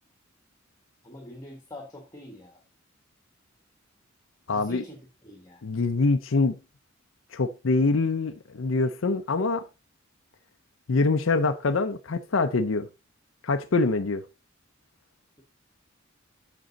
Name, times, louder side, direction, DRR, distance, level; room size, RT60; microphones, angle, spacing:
voice 1, 1.0-2.6 4.5-5.6, left 1 dB, 20° left, 1.5 m, -44 dB
voice 2, 4.5-4.8 5.6-6.6 7.3-9.7 10.9-12.9 13.4-14.2, left 3 dB, 70° left, 0.6 m, -24 dB
7.8 x 6.1 x 4.0 m
head